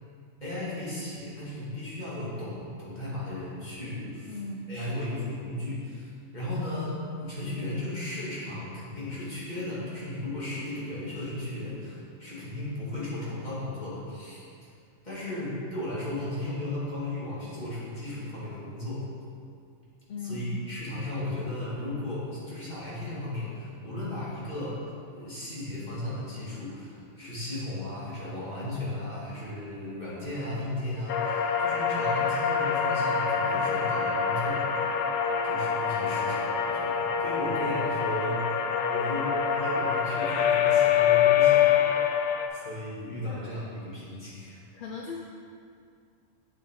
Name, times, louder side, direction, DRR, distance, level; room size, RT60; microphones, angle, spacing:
voice 1, 0.4-4.4 4.7-14.5 15.0-19.0 20.2-24.8 25.1-34.9 35.4-38.4 38.8-42.0 42.5-44.6, left 1 dB, 35° left, -9 dB, 2.4 m, -35 dB
voice 2, 4.3-5.1 20.1-20.6 43.2-43.4 44.7-45.2, left 3 dB, 55° left, -1 dB, 0.6 m, -38 dB
sound 1, 31.1-42.5, left 7 dB, 85° left, 1.0 m, -25 dB
7.9 x 7.1 x 3.8 m, 2.3 s
omnidirectional pair, 1.3 m